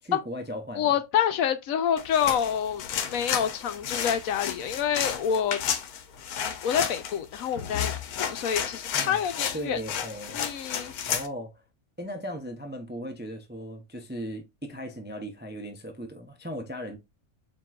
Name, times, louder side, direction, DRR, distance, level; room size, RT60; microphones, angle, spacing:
voice 1, 0.0-1.0 8.9-9.2 9.5-10.4 11.0-11.6 12.0-17.0, equal, 15° right, 0.4 m, -37 dB
voice 2, 0.8-2.8 3.1-5.6 6.4-9.8 10.3-10.9, left 8 dB, 70° left, 1.0 m, -27 dB
sound 1, 2.0-11.3, left 8 dB, 85° left, 1.2 m, -32 dB
7.5 x 2.9 x 2.4 m
omnidirectional pair, 1.5 m